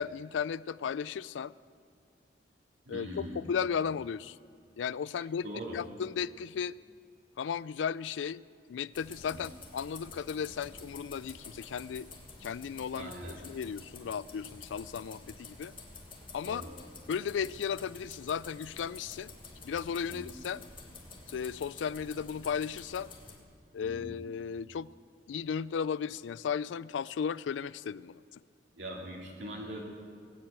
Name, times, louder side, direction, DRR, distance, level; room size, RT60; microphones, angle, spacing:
voice 1, 0.0-1.5 2.9-4.4 4.8-5.5 5.7-6.7 7.4-8.4 8.7-12.1 12.4-15.7 16.3-16.6 17.1-19.3 19.6-20.6 21.3-23.1 23.7-24.9 25.3-28.2, left 7 dB, 85° left, 20 dB, 0.3 m, -35 dB
voice 2, 2.9-3.5 5.4-5.8 12.9-13.4 16.4-16.7 20.1-20.3 23.8-24.1 28.8-29.8, right 1 dB, 80° right, -2 dB, 2.3 m, -41 dB
sound 1, 8.9-23.4, left 3 dB, 30° left, 2.0 m, -50 dB
18.0 x 7.9 x 8.9 m, 2.2 s
head